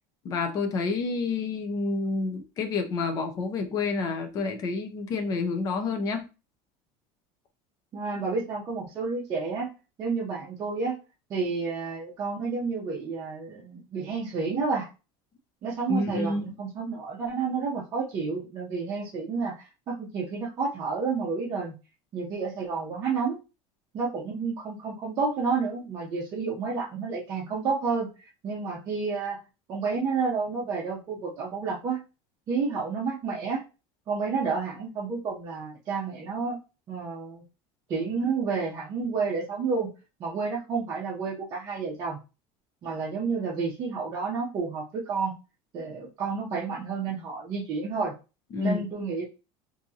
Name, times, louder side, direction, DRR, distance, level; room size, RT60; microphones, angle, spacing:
voice 1, 0.2-6.3 15.9-16.5 48.5-48.8, left 3 dB, 25° left, 0.6 m, -29 dB
voice 2, 7.9-9.7 10.0-11.0 11.3-14.9 15.6-21.8 22.1-23.4 23.9-29.4 29.7-32.0 32.5-33.6 34.1-36.6 36.9-37.4 37.9-39.9 40.2-42.2 42.8-45.3 45.7-48.1 48.6-49.3, right 4 dB, 25° right, 0.7 m, -30 dB
3.5 x 2.7 x 2.7 m
cardioid pair, 180°, 13 cm